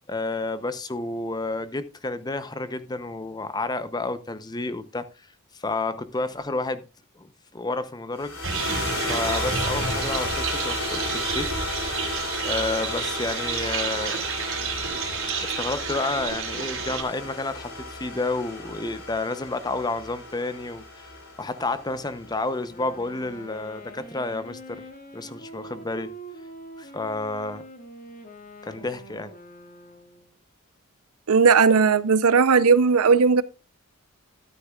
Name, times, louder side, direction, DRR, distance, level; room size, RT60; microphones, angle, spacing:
voice 1, 0.1-5.1 5.5-6.8 7.2-8.3 9.1-11.7 12.4-14.3 15.4-21.1 21.4-24.9 25.1-26.1 26.8-27.6 28.6-29.3, left 2 dB, 20° left, 0.7 m, -30 dB
sound 1, 8.2-22.6, left 2 dB, 65° left, 4.4 m, -33 dB
sound 2, 8.4-17.0, right 6 dB, 65° right, 3.2 m, -30 dB
Wind instrument woodwind instrument, 22.4-30.3, right 1 dB, 35° left, 1.8 m, -44 dB
voice 2, 31.3-33.4, right 5 dB, 85° right, 0.6 m, -17 dB
13.5 x 9.9 x 2.4 m
head